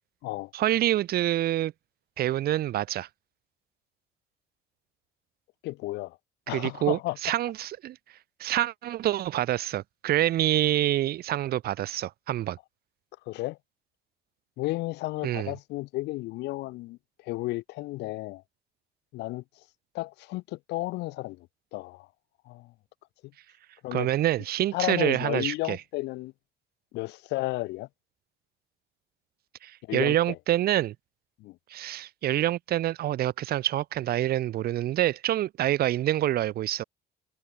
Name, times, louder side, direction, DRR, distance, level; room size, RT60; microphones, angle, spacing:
voice 1, 0.5-1.7 2.2-3.1 6.5-8.0 8.4-12.6 15.2-15.5 23.9-25.8 29.6-31.0 31.7-36.8, right 13 dB, 65° right, 1.8 m, -26 dB
voice 2, 5.6-6.2 6.5-7.2 13.3-13.6 14.6-17.0 17.2-18.4 19.1-19.4 19.9-21.5 21.7-22.1 22.4-22.7 23.8-24.1 24.7-26.3 26.9-27.9 29.9-30.4 31.4-31.6, left 19 dB, 90° left, 5.0 m, -33 dB
cardioid pair, 110°, 17 cm